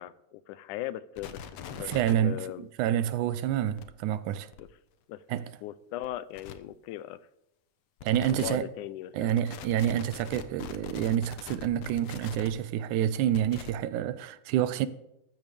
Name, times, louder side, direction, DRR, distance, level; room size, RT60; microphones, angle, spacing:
voice 1, 0.0-1.4 1.8-1.9 2.2-2.7 4.6-4.7 5.1-5.2 5.6-7.2 8.3-9.7, left 14 dB, 90° left, 2.1 m, -38 dB
sound 1, 1.2-2.1 3.5-3.8 4.5-4.6 6.0-6.1 6.3-6.5 8.0-8.5 9.3-12.5 13.3-13.7, left 8 dB, 65° left, 1.7 m, -42 dB
voice 2, 1.8-2.5 2.8-4.5 5.3-5.5 8.0-8.7 9.1-14.9, right 11 dB, 90° right, 2.1 m, -28 dB
14.0 x 13.5 x 3.5 m
omnidirectional pair, 3.5 m